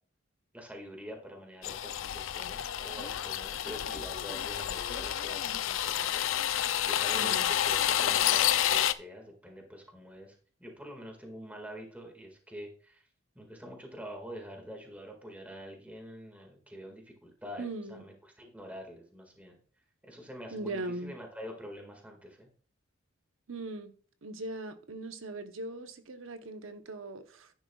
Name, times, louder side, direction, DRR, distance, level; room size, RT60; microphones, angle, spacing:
voice 1, 0.5-13.1 13.4-19.6 20.0-22.5, equal, 10° right, 1.9 m, -46 dB
sound 1, 1.6-8.9, left 11 dB, 75° left, 0.5 m, -29 dB
voice 2, 7.1-7.5 17.6-18.0 20.5-21.1 23.5-23.9 24.2-27.5, right 2 dB, 80° right, 0.9 m, -39 dB
10.5 x 10.0 x 2.4 m
head